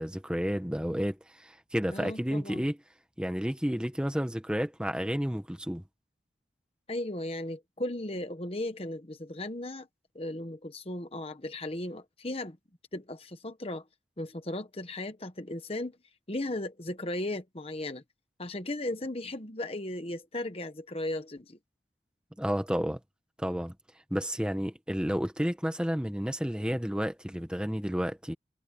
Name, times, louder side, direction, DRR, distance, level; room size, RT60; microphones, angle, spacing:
voice 1, 0.0-2.8 3.2-5.8 22.4-23.0 23.4-23.7 24.1-28.3, equal, 5° right, 1.3 m, -31 dB
voice 2, 1.9-2.6 6.9-9.9 10.1-12.6 12.9-13.8 14.2-16.0 16.3-18.0 18.4-21.6, left 1 dB, 30° left, 1.1 m, -36 dB
head